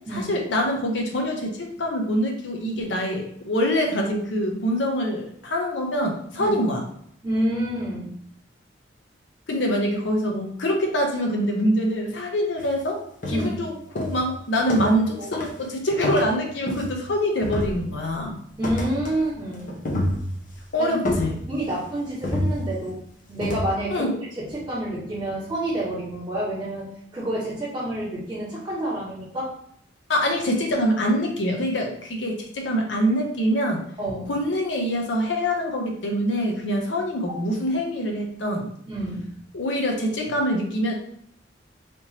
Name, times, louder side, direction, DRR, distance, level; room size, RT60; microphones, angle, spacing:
voice 1, 0.1-6.8 9.5-13.0 13.3-18.4 20.7-21.4 23.9-24.1 30.1-33.8 34.3-38.7 39.5-40.9, equal, 80° left, 1 dB, 0.8 m, -25 dB
voice 2, 7.2-8.1 13.3-13.6 15.2-15.3 18.6-19.8 20.8-20.9 21.5-24.1 24.4-29.5 34.0-34.3 37.3-37.4 38.9-39.3, right 1 dB, 25° right, -10 dB, 1.5 m, -28 dB
sound 1, 12.6-12.8 13.2-13.6 14.0-15.1 15.3-15.6 16.0-17.1 17.4-18.1 18.6-19.2 19.5-20.6 21.0-21.8 22.2-22.9 23.4-23.7, left 1 dB, 45° left, 0.8 m, -28 dB
3.4 x 3.0 x 2.8 m, 0.68 s
head